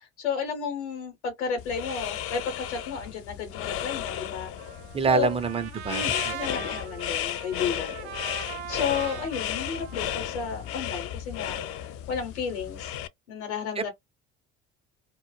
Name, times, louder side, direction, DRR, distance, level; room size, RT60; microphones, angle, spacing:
voice 1, 0.0-4.5 5.1-5.4 5.9-11.6 12.1-13.0 13.3-13.9, left 6 dB, 80° left, 0.9 m, -32 dB
sound 1, 1.6-13.1, left 11 dB, 45° left, 0.4 m, -34 dB
Trumpet, 4.6-10.8, right 11 dB, 75° right, 0.5 m, -41 dB
voice 2, 4.9-6.3 13.8-13.9, right 4 dB, 20° right, 0.5 m, -26 dB
2.2 x 2.1 x 3.1 m
hypercardioid pair, 60°, 34 cm